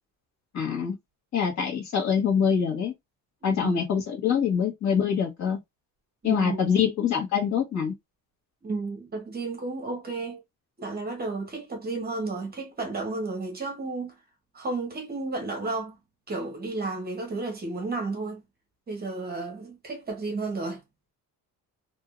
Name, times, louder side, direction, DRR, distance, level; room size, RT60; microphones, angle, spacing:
voice 1, 0.5-1.0 1.3-2.9 3.4-5.6 6.2-8.0, left 7 dB, 50° left, 1.5 m, -25 dB
voice 2, 3.4-3.8 6.2-6.6 8.6-10.4 10.8-14.2 14.5-16.0 16.3-18.4 18.9-20.8, right 3 dB, 25° right, 0.9 m, -32 dB
3.5 x 2.8 x 2.4 m
cardioid pair, 160°, 36 cm